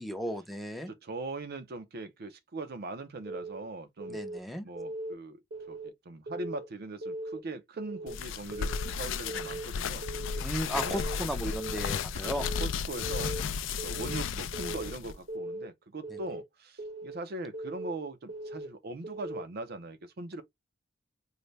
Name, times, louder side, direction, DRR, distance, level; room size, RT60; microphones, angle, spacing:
voice 1, 0.0-0.9 4.1-4.7 10.4-12.5 16.1-16.2, equal, ahead, 0.5 m, -35 dB
voice 2, 0.9-4.2 4.6-5.4 5.7-10.1 10.7-11.1 12.2-13.3 13.8-20.4, right 2 dB, 55° right, 0.5 m, -41 dB
Keyboard (musical) / Alarm, 3.3-3.6 4.0-4.4 4.8-5.1 5.5-5.9 6.3-6.6 7.0-7.4 7.8-8.1 8.5-8.9 9.3-9.6 10.0-10.4 10.8-11.2 11.5-11.9 12.3-12.7 13.0-13.4 13.8-14.2 14.5-14.9 15.3-15.7 16.0-16.4 16.8-17.2 17.5-17.9 18.3-18.7 19.0-19.4, right 2 dB, 90° right, 1.3 m, -39 dB
sound 1, 8.1-15.1, left 6 dB, 80° left, 0.4 m, -34 dB
3.9 x 2.1 x 3.2 m
head